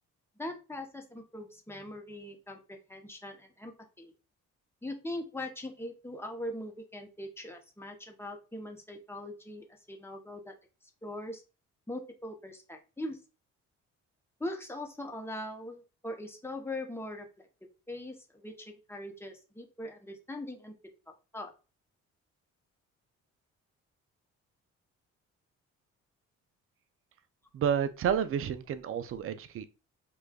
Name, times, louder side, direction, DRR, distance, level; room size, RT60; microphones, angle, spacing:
voice 1, 0.4-4.1 4.8-10.5 11.0-11.4 11.9-13.2 14.4-17.5 17.9-20.7 21.1-21.5, left 1 dB, 10° left, 0.7 m, -41 dB
voice 2, 27.5-29.7, right 8 dB, 45° right, 0.4 m, -30 dB
5.0 x 2.2 x 2.2 m
cardioid pair, 90°, 30 cm